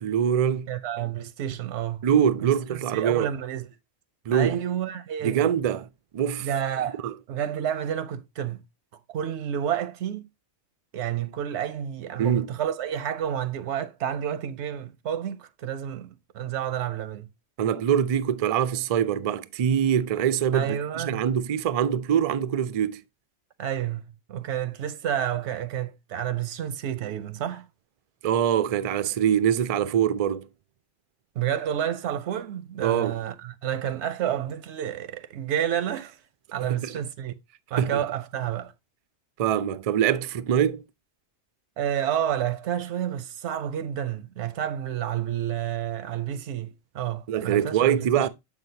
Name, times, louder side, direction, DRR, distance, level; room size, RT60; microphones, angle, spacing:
voice 1, 0.0-0.7 2.0-3.3 4.3-4.6 5.2-5.9 6.1-6.5 7.0-7.1 12.2-12.5 17.6-23.0 28.2-30.5 32.8-33.2 36.6-36.9 37.8-38.0 39.4-40.8 47.3-48.3, right 9 dB, 70° right, 0.3 m, -24 dB
voice 2, 0.7-2.1 2.4-3.7 4.3-5.5 6.4-8.6 9.1-10.2 10.9-17.3 20.5-21.2 23.6-24.0 24.3-27.7 31.4-36.2 36.5-37.3 37.7-38.7 41.8-48.3, right 10 dB, 90° right, 0.9 m, -30 dB
7.2 x 5.9 x 2.7 m
omnidirectional pair, 1.1 m